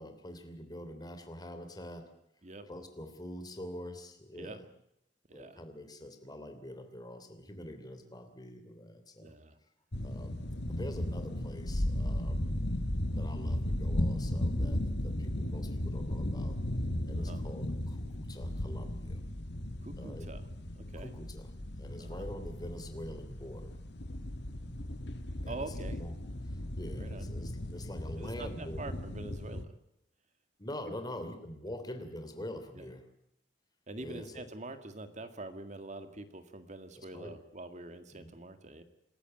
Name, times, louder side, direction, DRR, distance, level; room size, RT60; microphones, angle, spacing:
voice 1, 0.0-2.1 2.7-4.7 5.3-9.3 10.0-12.5 13.1-16.6 17.1-19.2 20.0-20.3 21.0-21.5 21.8-23.8 25.4-25.7 25.9-26.1 26.4-28.8 30.6-33.0 34.0-34.5 37.0-37.4 38.1-38.3, left 1 dB, 25° left, 7 dB, 3.1 m, -45 dB
voice 2, 5.3-5.6 9.2-9.6 17.1-17.4 19.8-20.5 20.8-21.1 22.0-22.3 25.5-26.0 27.0-27.3 28.2-29.8 30.9-31.0 32.7-32.9 33.9-38.8, right 2 dB, 40° right, 9 dB, 2.0 m, -45 dB
sound 1, 9.9-29.6, left 1 dB, 70° left, 1.7 m, -36 dB
27.0 x 14.0 x 9.0 m, 0.77 s
head